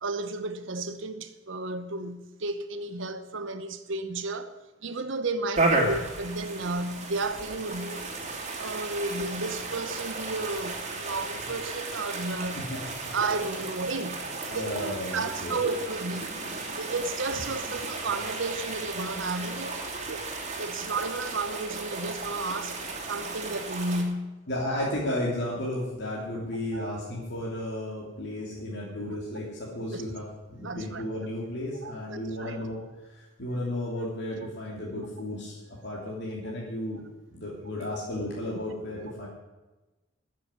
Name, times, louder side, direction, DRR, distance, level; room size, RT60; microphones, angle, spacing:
voice 1, 0.0-4.6 4.8-8.2 8.6-12.6 13.1-20.3 20.6-24.4 26.7-26.9 29.9-30.0 30.6-31.0 31.8-32.6 37.7-37.9, right 3 dB, 65° right, 0.9 m, -33 dB
sound 1, 5.5-24.0, right 3 dB, 35° right, 2.7 m, -34 dB
voice 2, 12.5-13.1 14.5-15.6 24.5-30.2 30.5-32.8 33.1-37.0 37.3-39.3, left 1 dB, 60° left, 3.0 m, -33 dB
13.5 x 7.5 x 9.8 m
head